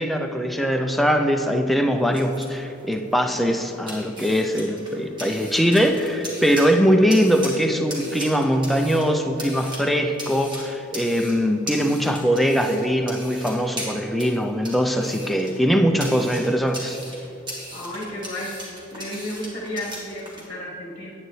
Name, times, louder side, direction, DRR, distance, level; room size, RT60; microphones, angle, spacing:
voice 1, 0.0-17.0, equal, ahead, 3 dB, 0.4 m, -21 dB
sound 1, 1.9-20.4, equal, 20° right, 1.6 m, -39 dB
voice 2, 6.9-7.4 17.7-18.5 18.9-21.1, left 1 dB, 35° left, -2 dB, 1.3 m, -33 dB
9.4 x 8.7 x 3.2 m, 2.7 s
head